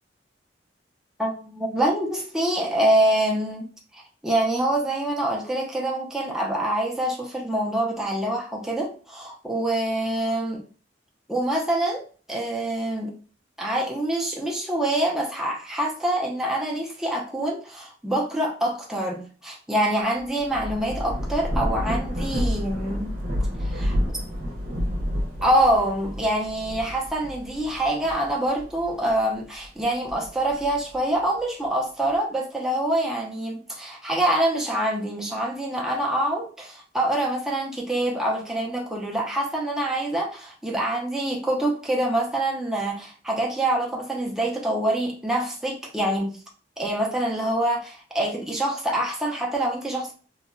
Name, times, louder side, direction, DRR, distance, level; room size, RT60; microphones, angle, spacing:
voice 1, 1.2-3.6 3.9-10.6 11.3-12.0 12.3-13.1 13.6-23.1 23.6-23.9 25.4-46.4 46.8-50.1, right 1 dB, 5° right, 0.5 m, -25 dB
Thunder / Rain, 20.2-29.1 29.6-31.0, equal, 50° right, 0.7 m, -29 dB
2.8 x 2.1 x 2.5 m
head